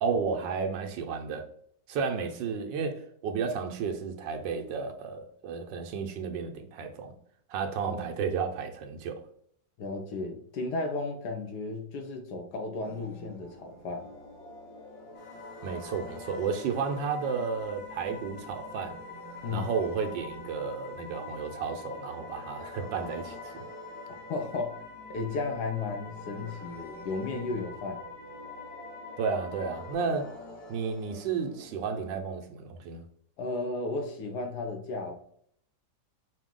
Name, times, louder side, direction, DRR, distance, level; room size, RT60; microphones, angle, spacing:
voice 1, 0.0-1.5 1.9-7.1 7.5-9.2 15.6-19.0 19.5-23.6 29.2-30.3 30.7-33.0, right 5 dB, 85° right, 1.4 m, -32 dB
voice 2, 9.8-14.1 19.4-19.7 24.3-24.8 25.1-28.0 33.4-35.1, left 3 dB, 70° left, 1.4 m, -34 dB
sound 1, 12.8-32.2, equal, 90° left, 1.7 m, -48 dB
sound 2, 15.1-29.9, left 4 dB, 30° left, 1.3 m, -46 dB
5.1 x 2.7 x 3.7 m
omnidirectional pair, 1.9 m